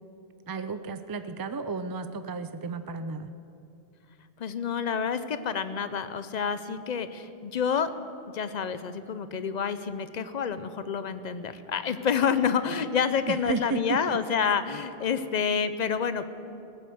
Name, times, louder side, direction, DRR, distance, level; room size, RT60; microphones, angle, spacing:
voice 1, 0.5-3.3 13.3-14.2, right 4 dB, 35° right, 11 dB, 0.3 m, -33 dB
voice 2, 4.4-7.9 8.3-16.3, left 6 dB, 50° left, 12 dB, 0.7 m, -28 dB
18.5 x 8.1 x 7.7 m, 2.7 s
omnidirectional pair, 1.1 m